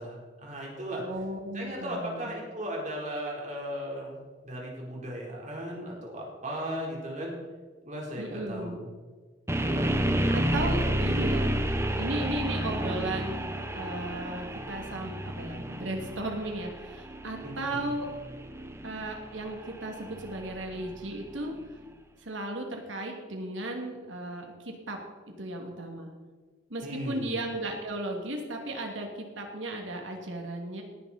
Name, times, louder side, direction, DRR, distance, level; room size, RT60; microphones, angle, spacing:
voice 1, 0.0-1.0 1.5-4.2 4.4-7.3 7.8-8.9 9.6-9.9 17.4-17.9 26.8-27.3, equal, 40° right, -2 dB, 4.3 m, -36 dB
voice 2, 1.0-2.3 8.2-8.8 10.3-11.5 12.0-18.1 18.8-21.6 22.2-25.0 25.4-26.1 26.7-30.8, right 1 dB, 90° right, 2 dB, 2.7 m, -35 dB
sound 1, 9.5-21.4, right 1 dB, 15° right, 1.0 m, -31 dB
18.5 x 10.5 x 4.4 m, 1.4 s
head